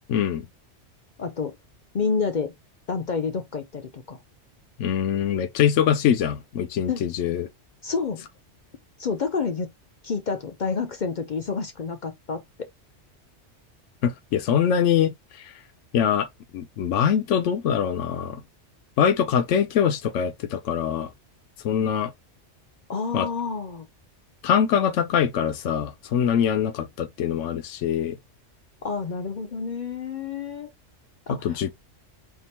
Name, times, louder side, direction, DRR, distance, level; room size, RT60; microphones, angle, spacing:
voice 1, 0.1-0.4 4.8-7.5 14.0-15.5 15.9-16.3 16.5-18.4 19.0-21.1 21.6-22.1 23.1-23.3 24.4-28.2 31.4-31.7, left 8 dB, 80° left, 1.0 m, -23 dB
voice 2, 1.2-1.5 1.9-2.5 2.9-4.2 6.9-7.0 7.8-8.3 9.0-9.7 10.0-12.7 22.9-23.9 28.8-30.7 31.3-31.6, left 5 dB, 50° left, 0.6 m, -29 dB
3.7 x 2.4 x 4.2 m
omnidirectional pair, 1.2 m